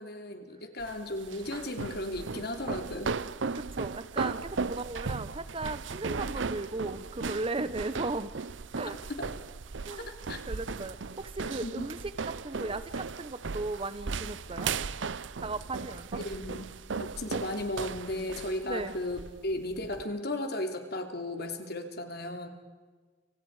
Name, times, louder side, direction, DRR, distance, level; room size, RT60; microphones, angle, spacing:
voice 1, 0.0-3.2 9.2-9.3 10.0-10.4 11.6-11.9 16.1-16.7 17.0-22.5, left 1 dB, 60° left, 5 dB, 3.1 m, -35 dB
sound 1, 0.8-20.0, right 4 dB, 85° right, 0.7 m, -37 dB
voice 2, 3.5-8.3 8.8-9.0 9.8-10.1 10.5-12.0 12.3-14.7 15.4-16.2 18.6-18.9, right 2 dB, 30° right, 14 dB, 0.9 m, -36 dB
30.0 x 26.5 x 4.9 m, 1.5 s
head